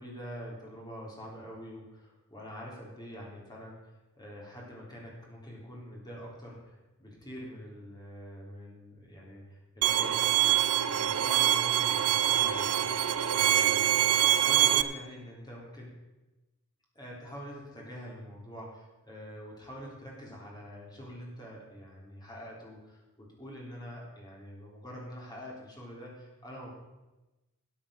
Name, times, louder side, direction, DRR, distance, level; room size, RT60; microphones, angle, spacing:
voice 1, 0.0-13.9 14.3-15.9 16.9-26.7, equal, 20° left, -3 dB, 3.7 m, -45 dB
Bowed string instrument, 9.8-14.8, right 11 dB, 80° right, 0.6 m, -25 dB
13.5 x 8.7 x 5.9 m, 1.1 s
head